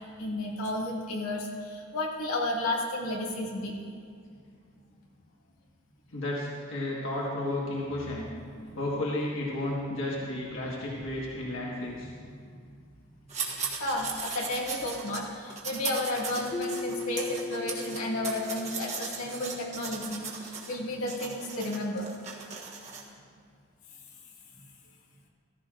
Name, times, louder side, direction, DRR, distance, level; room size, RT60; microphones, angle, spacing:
voice 1, 0.2-3.7 13.8-22.1, left 1 dB, 90° left, -3 dB, 2.1 m, -32 dB
voice 2, 6.1-8.3 8.7-12.1, left 1 dB, 65° left, -4 dB, 1.6 m, -32 dB
sound 1, 13.3-15.2 15.5-20.8 21.1-23.0, right 5 dB, 35° right, 1.4 m, -38 dB
Keyboard (musical), 16.5-19.3, left 3 dB, 30° left, 0.6 m, -38 dB
15.0 x 14.5 x 2.5 m, 2.2 s
head